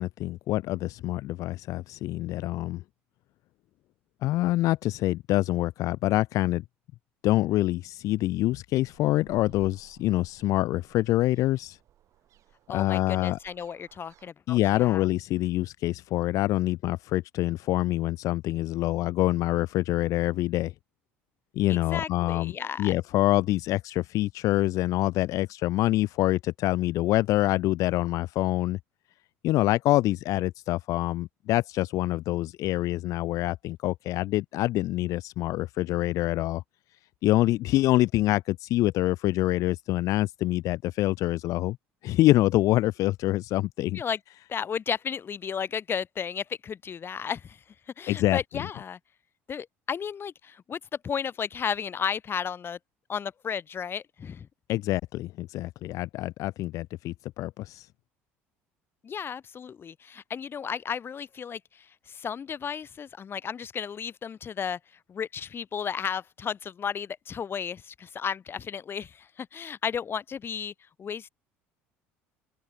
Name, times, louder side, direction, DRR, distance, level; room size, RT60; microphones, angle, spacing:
voice 1, 0.0-2.8 4.2-6.6 7.2-11.8 12.7-13.4 14.5-20.7 21.6-22.5 22.8-28.8 29.4-36.6 37.2-41.8 42.0-44.0 48.1-48.4 54.7-57.9, left 16 dB, 60° left, 0.6 m, -26 dB
sound 1, 8.9-14.3, right 12 dB, 55° right, 7.6 m, -56 dB
voice 2, 12.7-15.0 21.7-22.9 43.9-44.2 44.5-47.6 48.0-49.0 49.5-52.8 53.1-54.5 59.0-64.8 65.1-70.7 71.0-71.3, left 7 dB, 40° left, 1.1 m, -34 dB
open air
hypercardioid pair, 70°, 6 cm